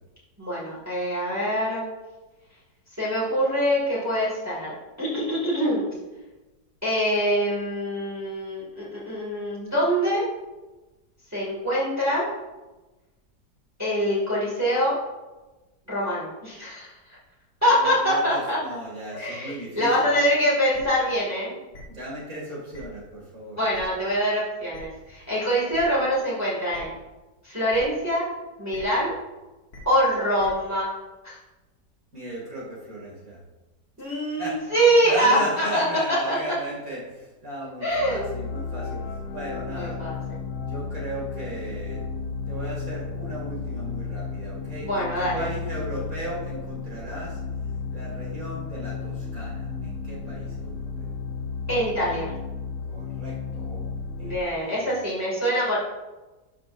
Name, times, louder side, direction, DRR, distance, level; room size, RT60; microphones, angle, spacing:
voice 1, 0.4-1.9 3.0-5.9 6.8-10.2 11.3-12.2 13.8-15.0 15.9-16.9 17.6-18.6 19.2-21.5 23.6-26.9 27.4-28.2 28.6-29.1 29.8-30.9 31.2-31.4 34.0-35.8 36.3-36.4 37.8-38.3 39.7-40.1 44.8-45.4 51.7-52.3 54.2-55.8, equal, 10° right, -8 dB, 2.1 m, -24 dB
voice 2, 17.7-20.1 21.8-23.6 32.1-33.4 34.0-34.7 35.0-40.0 40.5-42.0 42.5-47.4 47.9-51.2 52.9-53.9 54.2-55.0, right 1 dB, 55° right, -4 dB, 2.8 m, -36 dB
sound 1, 20.7-20.8 21.7-21.8 22.7-22.8 23.7-23.8 24.7-24.8 25.7-25.8 26.7-26.8 27.7-27.8 28.7-28.8 29.7-29.8 30.4-30.5, left 1 dB, 65° left, 2.0 m, -44 dB
sound 2, 37.9-54.4, left 5 dB, 85° left, 0.6 m, -33 dB
12.0 x 6.3 x 2.6 m, 1.1 s
omnidirectional pair, 1.8 m